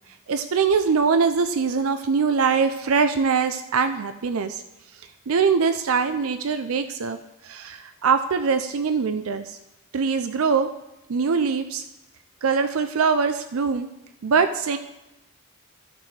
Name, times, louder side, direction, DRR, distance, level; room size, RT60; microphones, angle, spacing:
voice 1, 0.3-4.6 5.3-7.2 7.4-9.6 9.9-10.7 11.1-11.8 12.4-13.9 14.2-14.8, right 5 dB, 70° right, 9 dB, 0.5 m, -22 dB
14.5 x 6.2 x 3.3 m, 0.93 s
head